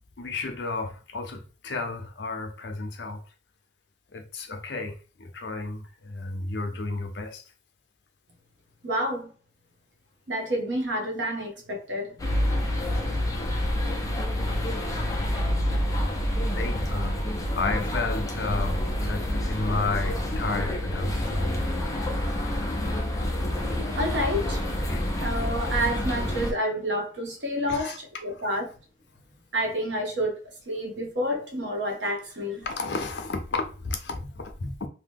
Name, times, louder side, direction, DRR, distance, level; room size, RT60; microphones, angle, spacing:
voice 1, 0.2-3.2 4.1-4.9 5.2-7.4 16.5-17.2 17.6-21.5 23.2-23.3 24.9-25.0 27.7-28.0 32.6-34.9, left 3 dB, 70° left, 0.6 m, -32 dB
voice 2, 8.8-9.3 10.3-12.2 24.0-24.6 25.2-28.7 29.5-32.7, equal, 75° right, 0.9 m, -29 dB
sound 1, 12.2-26.5, left 1 dB, 20° left, 0.5 m, -28 dB
2.8 x 2.1 x 3.4 m
head